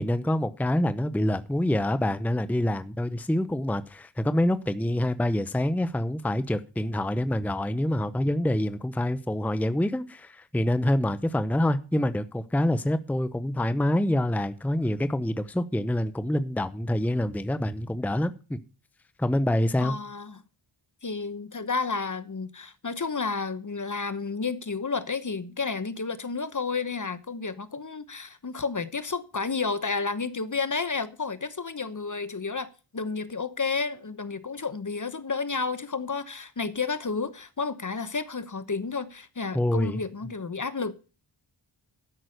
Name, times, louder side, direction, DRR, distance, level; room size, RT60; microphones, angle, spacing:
voice 1, 0.0-18.6 19.2-19.9 39.5-40.0, left 1 dB, 5° left, 0.7 m, -26 dB
voice 2, 19.8-20.4 21.0-40.9, left 4 dB, 35° left, 1.0 m, -31 dB
12.5 x 6.1 x 6.5 m
wide cardioid pair, 55°, 50 cm